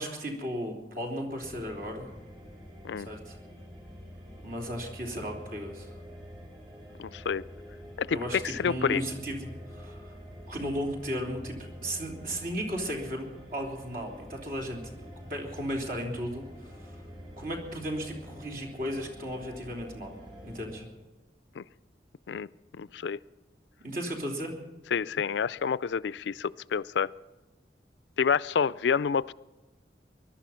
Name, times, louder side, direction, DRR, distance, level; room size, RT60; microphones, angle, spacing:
voice 1, 0.0-2.1 3.0-3.4 4.4-5.9 8.1-10.2 10.5-11.6 11.8-17.0 17.4-20.2 20.4-20.8 23.8-24.5, equal, 50° right, 1 dB, 3.4 m, -35 dB
sound 1, 1.4-20.8, equal, 30° right, 6.5 m, -47 dB
voice 2, 7.0-7.4 8.0-9.0 21.6-21.7 22.3-22.5 22.7-23.2 24.9-27.1 28.2-29.3, left 6 dB, 85° left, 19 dB, 0.4 m, -28 dB
21.0 x 12.0 x 5.7 m, 1.2 s
head